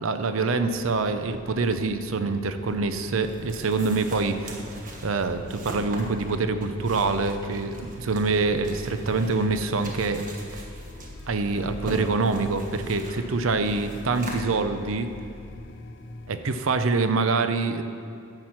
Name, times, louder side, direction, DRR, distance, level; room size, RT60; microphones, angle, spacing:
voice 1, 0.0-4.6 5.0-10.2 10.5-10.6 11.3-15.1 16.3-17.8, right 3 dB, 85° right, 9 dB, 0.6 m, -25 dB
sound 1, 0.6-17.2, left 2 dB, 60° left, 0.6 m, -43 dB
sound 2, 2.7-15.2, right 1 dB, 40° right, 1.3 m, -42 dB
10.5 x 7.9 x 5.9 m, 2.5 s
head